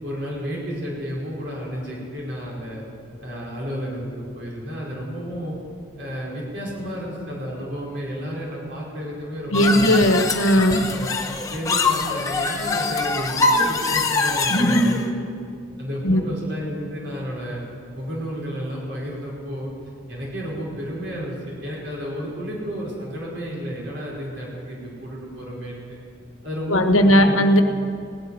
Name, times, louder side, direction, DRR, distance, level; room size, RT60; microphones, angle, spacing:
voice 1, 0.0-2.8 3.2-5.6 6.0-10.0 10.8-11.2 11.5-15.3 15.8-17.6 17.9-19.7 20.1-25.8 26.4-27.5, equal, 55° right, -4 dB, 4.6 m, -31 dB
voice 2, 9.5-10.8 14.5-14.9 16.0-16.2 26.7-27.6, equal, 90° left, 7 dB, 1.1 m, -17 dB
sound 1, 9.5-15.1, left 3 dB, 15° left, 0.9 m, -23 dB
17.0 x 8.7 x 9.7 m, 2.4 s
head